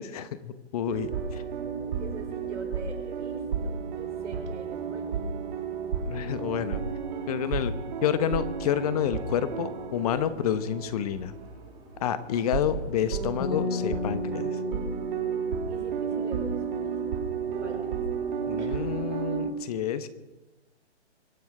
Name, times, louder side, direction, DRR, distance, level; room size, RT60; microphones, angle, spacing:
voice 1, 0.0-1.4 6.0-6.8 7.3-7.7 8.0-11.3 12.0-14.6 18.5-20.1, left 9 dB, 35° left, 12 dB, 1.1 m, -29 dB
sound 1, 0.9-11.1 11.3-11.5 12.3-19.5, right 6 dB, 45° right, 2.3 m, -32 dB
voice 2, 1.8-5.2 15.7-17.1 17.6-18.0 18.6-18.9, right 4 dB, 85° right, 4 dB, 4.7 m, -43 dB
sound 2, 8.4-13.8, right 1 dB, 10° right, 5.2 m, -50 dB
sound 3, 13.4-16.6, left 5 dB, 65° left, 3.7 m, -35 dB
24.0 x 9.2 x 4.9 m, 1.1 s
hypercardioid pair, 145°, 34 cm